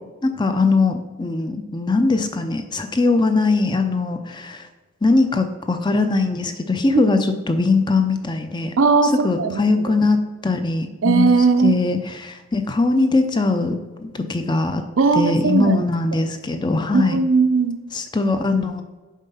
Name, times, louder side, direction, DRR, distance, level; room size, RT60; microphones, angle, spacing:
voice 1, 0.2-4.7 5.0-8.7 9.2-11.3 11.6-14.8 15.1-17.2 17.9-18.8, left 3 dB, 20° left, 8 dB, 0.5 m, -21 dB
voice 2, 8.8-10.0 11.0-11.8 15.0-15.8 16.9-17.8, right 4 dB, 70° right, 8 dB, 0.6 m, -18 dB
7.3 x 4.5 x 5.5 m, 1.2 s
head